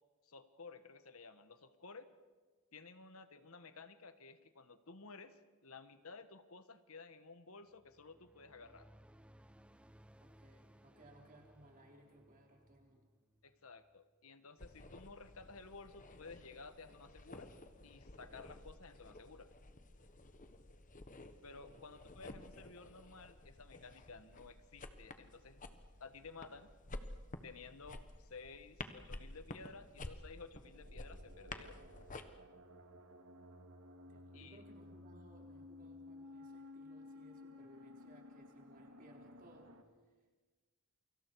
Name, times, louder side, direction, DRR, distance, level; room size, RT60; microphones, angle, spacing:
voice 1, 0.2-2.1 2.7-8.9 13.4-17.5 17.8-19.5 21.4-25.6 26.0-26.7 27.4-31.8 34.3-34.6, left 4 dB, 70° left, 10 dB, 1.3 m, -54 dB
sound 1, 7.7-14.3, equal, 5° right, 0.6 m, -64 dB
voice 2, 10.2-13.1 21.6-21.9 34.1-39.7, right 1 dB, 40° right, 0 dB, 4.1 m, -63 dB
sound 2, 14.6-32.2, left 2 dB, 35° left, 1.3 m, -52 dB
sound 3, 30.5-39.8, left 2 dB, 65° right, 2.1 m, -56 dB
29.0 x 24.5 x 4.7 m, 1.4 s
head